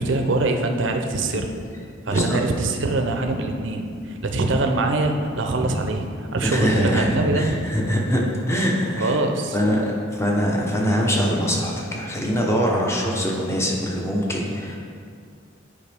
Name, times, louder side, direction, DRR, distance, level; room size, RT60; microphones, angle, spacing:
voice 1, 0.0-1.5 2.1-6.0 6.3-7.6 8.9-9.6, right 2 dB, 65° right, 4 dB, 0.6 m, -23 dB
voice 2, 2.1-2.4 4.5-4.6 6.4-8.2 8.5-9.2 9.5-9.8 10.1-14.8, equal, 15° left, -2 dB, 0.9 m, -23 dB
9.7 x 4.9 x 3.5 m, 2.3 s
head